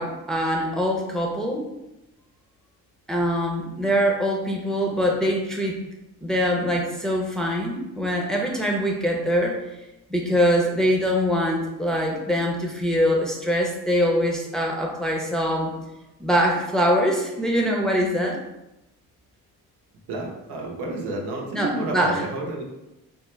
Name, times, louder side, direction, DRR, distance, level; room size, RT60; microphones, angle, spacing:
voice 1, 0.0-1.6 3.1-5.8 6.2-9.6 10.1-15.7 16.2-18.4 21.5-22.2, equal, ahead, -1 dB, 0.6 m, -23 dB
voice 2, 20.1-22.6, right 2 dB, 85° right, -1 dB, 0.8 m, -30 dB
3.4 x 2.1 x 3.2 m, 0.93 s
supercardioid pair, 70°, 38 cm